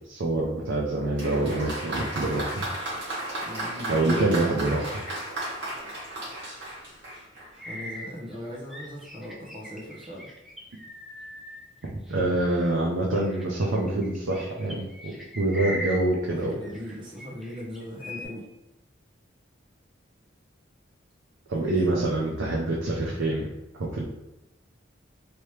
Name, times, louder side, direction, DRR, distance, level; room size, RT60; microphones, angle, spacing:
voice 1, 0.1-2.6 3.9-5.0 11.9-16.6 21.5-23.5 23.8-24.0, right 2 dB, 75° right, -4 dB, 0.6 m, -26 dB
Applause, 1.2-7.6, right 1 dB, 55° right, 1.5 m, -34 dB
voice 2, 3.4-4.0 7.6-10.3 16.3-18.5 21.6-22.2, equal, 25° right, -4 dB, 0.8 m, -39 dB
sound 1, 7.6-12.7 13.1-16.9 17.2-18.2, equal, ahead, 0.4 m, -40 dB
3.1 x 2.8 x 3.2 m, 0.94 s
head